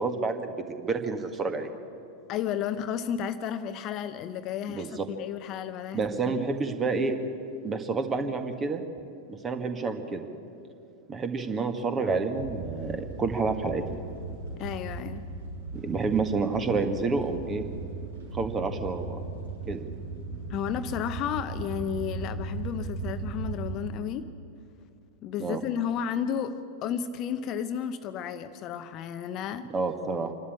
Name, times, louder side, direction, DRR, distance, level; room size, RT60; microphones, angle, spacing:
voice 1, 0.0-1.7 4.7-5.0 5.9-7.1 7.6-8.8 9.3-10.2 11.1-13.8 15.7-17.7 18.3-19.2 19.7-19.8 25.4-25.6 29.7-30.3, right 4 dB, 20° right, 7 dB, 1.8 m, -29 dB
voice 2, 2.3-6.3 14.6-15.3 20.5-24.3 25.2-26.6 26.8-29.7, left 8 dB, 35° left, 11 dB, 0.8 m, -32 dB
sound 1, 12.3-23.8, right 3 dB, 70° right, 5.9 m, -37 dB
27.0 x 12.5 x 8.7 m, 2.5 s
figure-of-eight pair, 90°, 0 cm